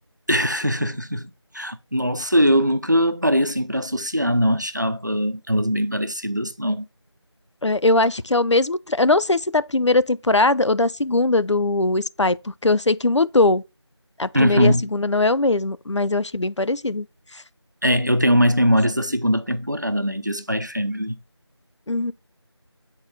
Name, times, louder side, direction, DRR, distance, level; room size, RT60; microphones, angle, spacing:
voice 1, 0.3-6.8 14.3-14.9 17.8-21.2, equal, 40° right, 0.7 m, -21 dB
voice 2, 7.6-13.6 14.2-17.1 17.3-17.4 21.9-22.1, left 2 dB, 85° left, 0.7 m, -20 dB
8.9 x 4.8 x 3.9 m
figure-of-eight pair, 180°, 15 cm